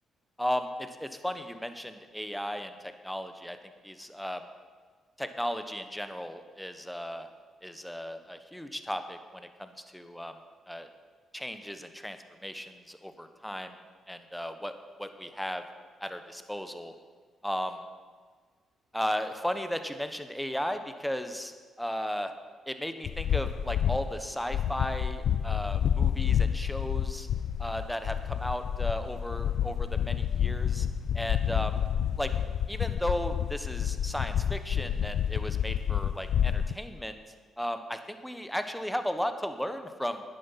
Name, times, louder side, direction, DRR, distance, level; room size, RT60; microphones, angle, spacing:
voice 1, 0.4-3.6 3.8-4.5 5.2-7.3 7.6-10.3 10.7-10.9 11.3-13.8 14.1-14.7 15.0-15.6 16.0-16.9 17.4-17.8 18.9-22.3 22.7-27.3 27.6-30.9 31.1-31.7 32.2-32.3 32.7-37.2 37.6-40.2, equal, 5° left, 8 dB, 1.1 m, -35 dB
sound 1, 23.0-24.2 24.5-36.7, left 9 dB, 70° left, 0.4 m, -29 dB
10.0 x 9.9 x 5.8 m, 1.5 s
supercardioid pair, 50°, 0 cm